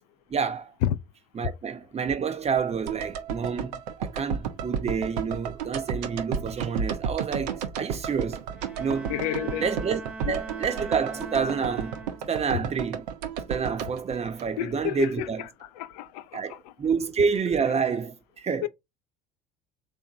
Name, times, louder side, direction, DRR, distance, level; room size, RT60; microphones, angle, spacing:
voice 1, 0.3-0.7 1.3-8.5 8.8-9.2 9.6-10.0 10.3-12.0 12.3-13.0 13.4-15.5 16.3-18.7, right 6 dB, 30° right, 1.0 m, -28 dB
sound 1, 2.9-15.1 15.3-15.4, right 7 dB, 75° right, 0.8 m, -33 dB
Bowed string instrument, 8.5-12.6, right 3 dB, 5° right, 0.7 m, -41 dB
voice 2, 9.1-9.7 10.3-10.4 14.6-16.6 18.6-18.7, left 12 dB, 70° left, 0.5 m, -30 dB
3.5 x 2.8 x 4.2 m
hypercardioid pair, 70°, 21 cm